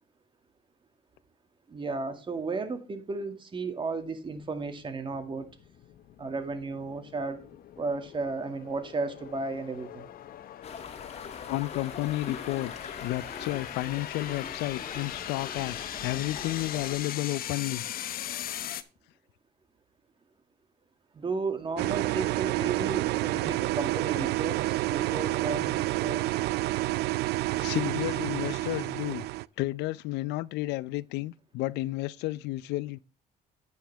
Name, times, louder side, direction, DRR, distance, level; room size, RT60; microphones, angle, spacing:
voice 1, 1.7-5.5 6.2-7.4 7.8-10.1 21.1-26.3, right 3 dB, 30° right, 2.2 m, -34 dB
sound 1, 4.3-18.8, left 11 dB, 60° left, 1.1 m, -40 dB
sound 2, 10.6-17.0, left 6 dB, 40° left, 2.4 m, -42 dB
voice 2, 11.5-15.8 16.0-17.8 27.5-29.2 29.6-33.0, left 18 dB, 90° left, 0.6 m, -32 dB
sound 3, 21.8-29.5, right 18 dB, 75° right, 0.4 m, -29 dB
10.5 x 9.3 x 3.5 m
cardioid pair, 110°, 17 cm